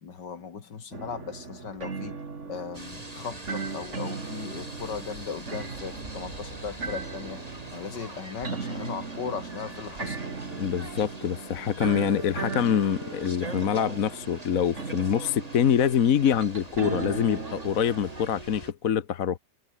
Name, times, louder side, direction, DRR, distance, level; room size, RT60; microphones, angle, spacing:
voice 1, 0.0-2.2 2.5-7.4 7.7-10.2, left 6 dB, 70° left, 2.7 m, -37 dB
sound 1, 0.9-18.4, right 4 dB, 40° right, 2.4 m, -37 dB
sound 2, 2.7-18.7, right 1 dB, 20° right, 5.7 m, -44 dB
voice 2, 10.6-19.4, left 8 dB, 55° left, 1.4 m, -25 dB
omnidirectional pair, 1.9 m